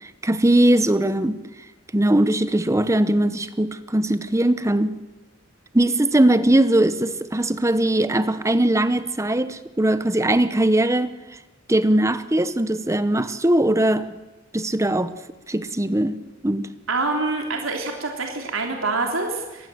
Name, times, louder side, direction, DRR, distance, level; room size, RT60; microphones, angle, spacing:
voice 1, 0.0-1.4 1.9-4.9 5.7-11.1 11.7-14.1 14.5-15.1 15.5-16.2 16.4-16.7, right 1 dB, 15° right, 0.8 m, -20 dB
voice 2, 16.9-19.7, right 3 dB, 90° right, 3.4 m, -26 dB
24.5 x 19.0 x 7.8 m
head